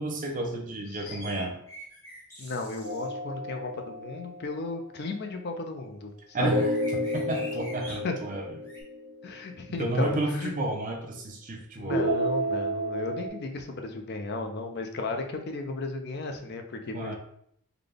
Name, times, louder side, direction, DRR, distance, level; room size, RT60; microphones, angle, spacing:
voice 1, 0.0-1.6 6.3-6.7 7.1-8.6 9.8-12.1 16.9-17.2, right 2 dB, 35° right, 1 dB, 0.5 m, -31 dB
sound 1, 1.1-3.1 6.6-8.0 8.6-8.8, right 1 dB, 10° left, 1.0 m, -45 dB
voice 2, 2.4-6.6 7.9-8.1 9.2-10.5 11.8-17.2, left 3 dB, 45° left, 5 dB, 0.5 m, -34 dB
sound 2, 2.8-4.4 6.4-9.5 11.9-13.3, equal, 55° right, 1.2 m, -31 dB
3.9 x 2.2 x 3.3 m, 0.70 s
head